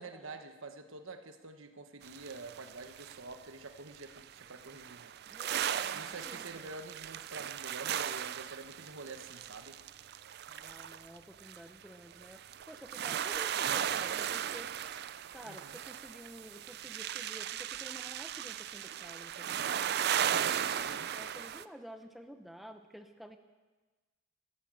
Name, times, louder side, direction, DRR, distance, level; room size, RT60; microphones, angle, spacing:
voice 1, 0.0-5.1 5.5-9.8 15.4-15.8 20.7-21.1, right 3 dB, 70° right, 7 dB, 1.2 m, -47 dB
sound 1, 2.0-3.3 4.0-21.6, right 9 dB, 50° right, 0.4 m, -37 dB
voice 2, 5.3-6.7 10.5-14.7 15.3-20.5 20.8-23.4, equal, ahead, 6 dB, 0.7 m, -51 dB
14.5 x 11.0 x 7.6 m, 1.3 s
head